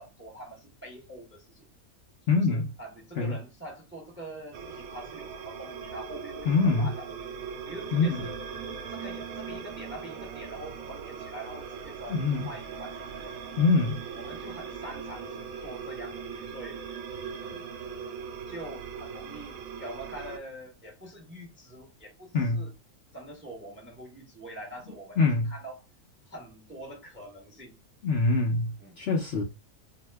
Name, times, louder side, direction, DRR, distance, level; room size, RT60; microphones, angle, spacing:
voice 1, 0.0-1.7 2.3-7.1 7.6-8.3 8.9-13.4 14.1-16.8 17.4-17.6 18.5-22.7 23.1-25.2 25.4-25.8 26.3-27.7 28.8-29.0, right 1 dB, 15° right, 0.5 m, -44 dB
voice 2, 2.3-2.7 3.2-3.4 6.5-6.9 7.9-8.2 12.1-12.5 13.6-14.0 22.3-22.6 25.2-25.5 28.0-29.4, left 3 dB, 60° left, 0.7 m, -24 dB
sound 1, 4.5-20.4, right 6 dB, 75° right, 1.0 m, -40 dB
2.7 x 2.1 x 3.2 m
omnidirectional pair, 1.5 m